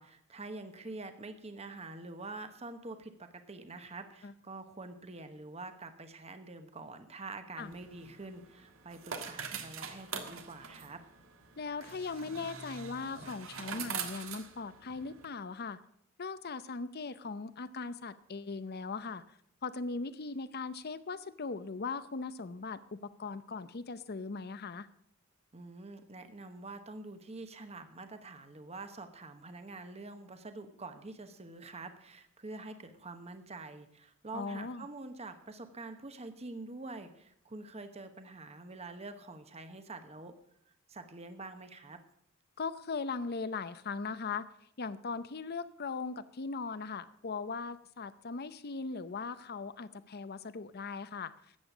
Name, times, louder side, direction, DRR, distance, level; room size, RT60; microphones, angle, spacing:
voice 1, 0.0-11.0 25.5-40.3 40.9-42.0, right 3 dB, 30° right, 8 dB, 1.1 m, -46 dB
sound 1, 7.6-15.3, right 6 dB, 80° right, 1.5 m, -44 dB
voice 2, 11.6-15.8 16.2-19.2 19.6-24.9 34.3-34.9 42.6-44.5 44.8-51.3, left 4 dB, 50° left, 14 dB, 0.7 m, -39 dB
13.5 x 8.6 x 6.1 m, 0.68 s
head